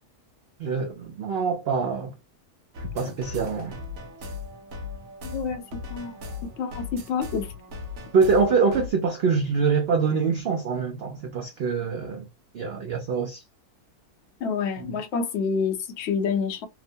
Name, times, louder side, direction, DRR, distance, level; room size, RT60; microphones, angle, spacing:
voice 1, 0.6-2.1 2.9-3.8 8.1-12.2 12.5-13.4 14.8-15.0, right 5 dB, 85° right, 0.5 m, -24 dB
sound 1, 2.7-8.9, left 4 dB, 65° right, 1.0 m, -38 dB
voice 2, 5.2-5.6 5.9-6.2 6.6-7.5 14.4-16.7, left 6 dB, 60° left, 0.8 m, -28 dB
2.9 x 2.1 x 2.5 m
omnidirectional pair, 1.6 m